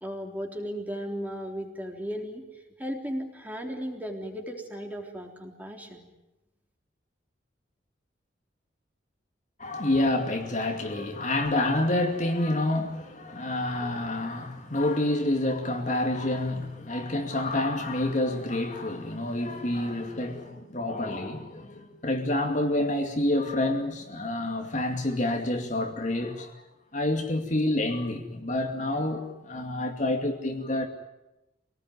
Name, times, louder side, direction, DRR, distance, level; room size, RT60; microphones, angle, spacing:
voice 1, 0.0-2.5 2.8-6.1, equal, 10° right, 3.5 m, -35 dB
voice 2, 9.6-26.6 26.9-30.9, left 1 dB, 40° left, 2.5 m, -28 dB
26.5 x 19.0 x 9.5 m
head